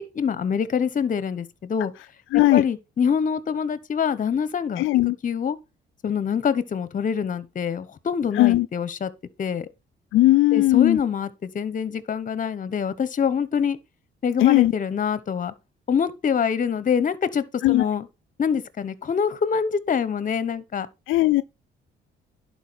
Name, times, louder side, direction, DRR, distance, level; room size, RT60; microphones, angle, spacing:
voice 1, 0.0-1.9 2.3-4.8 5.2-5.6 6.0-9.1 9.4-9.7 10.5-13.8 14.2-15.5 15.9-18.1 18.4-20.9, left 7 dB, 40° left, 0.9 m, -25 dB
voice 2, 2.3-2.6 4.8-5.2 8.3-8.7 10.1-11.0 14.4-14.7 17.6-17.9 21.1-21.4, left 17 dB, 80° left, 0.4 m, -18 dB
11.5 x 4.6 x 4.1 m
cardioid pair, 90°, 20 cm